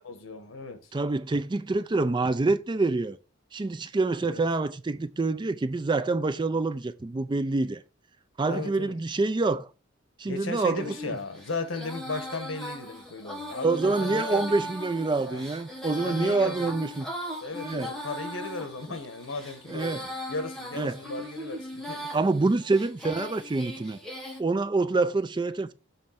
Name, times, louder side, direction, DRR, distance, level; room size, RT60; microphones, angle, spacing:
voice 1, 0.0-0.8 4.2-4.4 8.4-8.9 10.3-14.7 15.3-15.4 16.0-16.8 17.4-20.0 20.3-22.1, left 3 dB, 85° left, 1.3 m, -36 dB
voice 2, 0.9-3.2 3.5-7.8 8.4-9.7 10.2-10.8 13.6-17.1 17.6-17.9 19.7-20.0 20.8-21.0 22.1-24.0 24.4-25.7, right 3 dB, 25° right, 0.4 m, -26 dB
Female singing, 10.8-24.4, equal, 5° left, 1.5 m, -38 dB
7.4 x 3.3 x 5.7 m
head